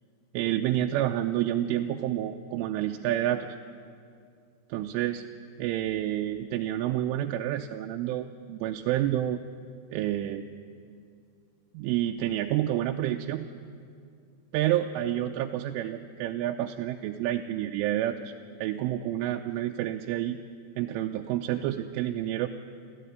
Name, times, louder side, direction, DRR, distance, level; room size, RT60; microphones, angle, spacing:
voice 1, 0.3-3.5 4.7-5.2 5.6-9.4 9.9-10.4 11.7-13.5 14.5-18.3 18.6-20.4 20.8-22.5, right 12 dB, 85° right, 4 dB, 3.2 m, -29 dB
26.5 x 15.0 x 9.4 m, 2.3 s
omnidirectional pair, 5.6 m